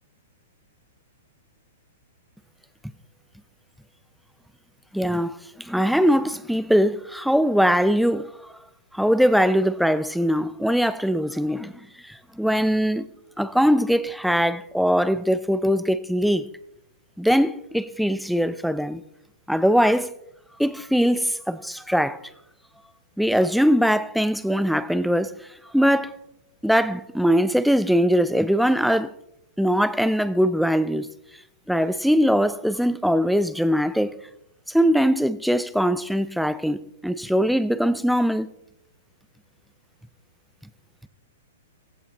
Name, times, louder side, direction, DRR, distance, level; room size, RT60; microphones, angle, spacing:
voice 1, 4.9-8.5 8.9-11.7 12.0-13.1 13.4-16.4 17.2-19.0 19.5-20.1 20.6-22.2 23.2-25.3 25.7-26.1 26.6-29.1 29.6-31.1 31.7-34.2 34.7-38.5, equal, ahead, 0.5 m, -21 dB
17.0 x 15.5 x 3.0 m
hypercardioid pair, 140°, 0 cm